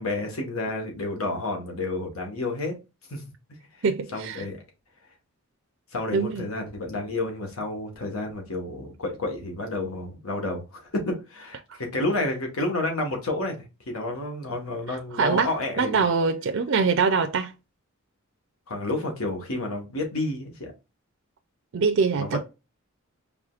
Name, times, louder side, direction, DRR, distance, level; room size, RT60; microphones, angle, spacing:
voice 1, 0.0-2.7 3.1-3.2 3.7-3.8 4.1-4.6 5.9-16.0 18.7-20.7 22.2-22.4, left 2 dB, 80° left, 1.3 m, -30 dB
voice 2, 3.8-4.4 6.1-6.4 11.7-11.8 15.1-17.5 21.7-22.4, right 5 dB, 65° right, 0.5 m, -24 dB
4.8 x 3.5 x 2.4 m
head